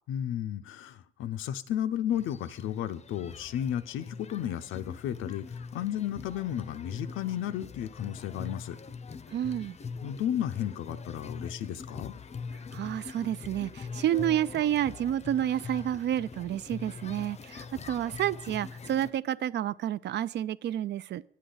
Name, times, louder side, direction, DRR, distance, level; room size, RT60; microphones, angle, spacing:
voice 1, 0.1-8.8 10.0-12.1, left 10 dB, 85° left, 13 dB, 0.6 m, -33 dB
sound 1, 2.1-19.1, left 5 dB, 35° left, 0.6 m, -43 dB
voice 2, 9.3-9.8 12.7-21.3, right 11 dB, 60° right, 17 dB, 0.4 m, -30 dB
11.0 x 8.4 x 3.9 m, 0.64 s
cardioid pair, 90°, 20 cm